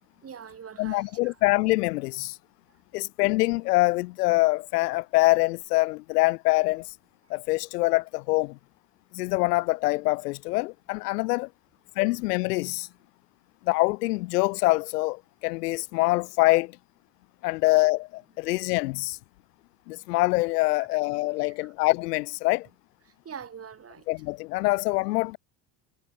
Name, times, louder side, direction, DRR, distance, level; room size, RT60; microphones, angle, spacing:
voice 1, 0.2-1.4 17.6-17.7 20.7-20.9 21.6-21.7 23.1-24.1, right 7 dB, 30° right, 2.6 m, -44 dB
voice 2, 0.8-2.4 2.9-6.9 7.3-8.6 9.1-11.5 12.0-12.9 13.6-16.8 17.4-19.2 19.9-22.7 24.1-25.4, left 22 dB, 85° left, 0.9 m, -25 dB
supercardioid pair, 85°, 46 cm